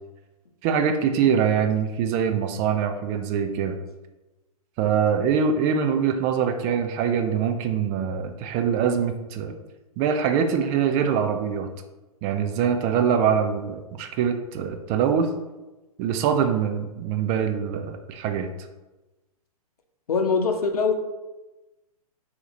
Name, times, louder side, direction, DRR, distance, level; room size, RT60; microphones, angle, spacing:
voice 1, 0.6-3.8 4.8-9.5 10.0-11.7 12.2-15.3 16.0-18.5, right 7 dB, 30° right, 6 dB, 0.4 m, -23 dB
voice 2, 20.1-20.9, left 4 dB, 75° left, 5 dB, 0.7 m, -22 dB
4.1 x 2.8 x 4.0 m, 1.1 s
hypercardioid pair, 120°, 19 cm